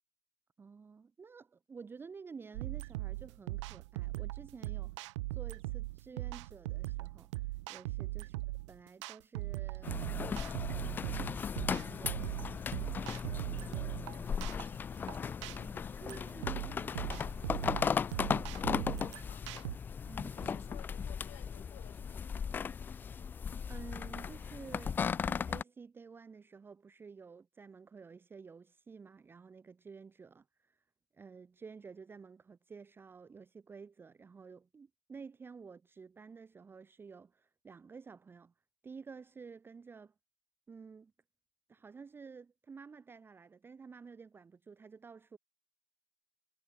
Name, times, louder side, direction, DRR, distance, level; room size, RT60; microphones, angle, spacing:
voice 1, 0.6-14.7 15.5-17.5 20.1-20.6 23.5-30.9 31.1-38.5 38.8-40.1 40.7-41.1 41.7-45.4, right 5 dB, 10° right, 1.5 m, -52 dB
sound 1, 2.5-19.8, right 20 dB, 50° right, 1.2 m, -40 dB
sound 2, 9.8-25.6, left 6 dB, 10° left, 0.4 m, -37 dB
voice 2, 18.5-19.7 20.3-22.9, left 21 dB, 35° left, 7.9 m, -58 dB
hypercardioid pair, 135°, 19 cm